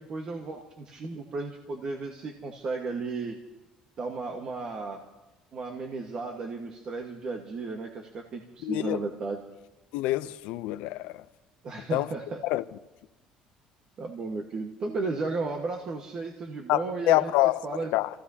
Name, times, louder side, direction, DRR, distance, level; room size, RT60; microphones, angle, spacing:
voice 1, 0.0-3.4 4.0-5.0 5.5-9.4 11.6-12.4 14.0-17.3 17.6-17.9, right 3 dB, 40° right, 1.5 m, -34 dB
voice 2, 8.6-9.0 9.9-11.1 11.9-12.1 12.4-12.6 16.7-17.6 17.9-18.1, left 17 dB, 85° left, 0.6 m, -26 dB
29.5 x 15.5 x 2.9 m
cardioid pair, 140°, 2 cm